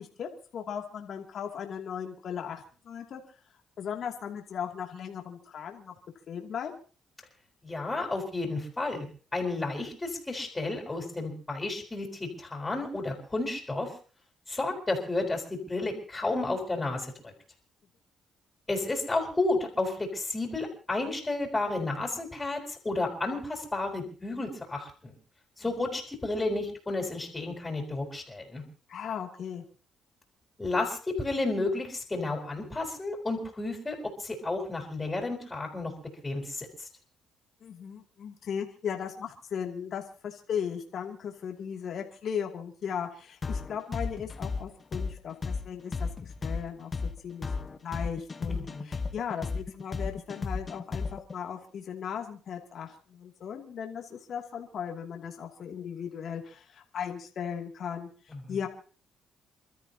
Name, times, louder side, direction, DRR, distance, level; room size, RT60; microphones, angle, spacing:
voice 1, 0.0-3.2 3.8-5.9 6.3-6.7 28.9-29.6 37.6-46.9 47.2-47.5 47.8-58.1 58.5-58.7, left 7 dB, 60° left, 2 dB, 2.7 m, -37 dB
voice 2, 7.6-9.1 9.3-13.9 14.5-17.3 18.7-25.1 25.6-28.6 30.6-35.9 36.2-36.9 48.5-48.9 58.3-58.6, left 2 dB, 15° left, 0 dB, 4.9 m, -32 dB
sound 1, 43.4-51.3, left 4 dB, 35° left, 1.2 m, -33 dB
29.0 x 13.5 x 2.9 m, 0.39 s
cardioid pair, 90°, 0 cm